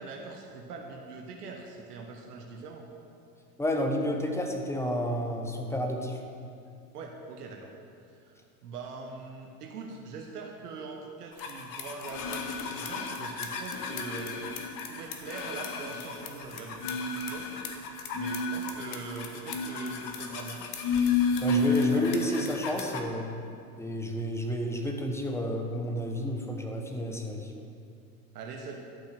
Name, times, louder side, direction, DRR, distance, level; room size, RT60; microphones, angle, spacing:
voice 1, 0.0-2.9 6.9-7.7 8.2-14.4 14.9-17.5 17.8-20.7 21.4-22.4 28.3-28.8, right 4 dB, 75° right, 1 dB, 1.2 m, -42 dB
voice 2, 3.6-6.2 21.4-23.3 23.8-27.5, equal, 5° left, 3 dB, 1.1 m, -31 dB
sound 1, 11.4-23.0, left 4 dB, 45° left, 1.3 m, -31 dB
11.5 x 5.7 x 6.0 m, 2.4 s
hypercardioid pair, 90°, 47 cm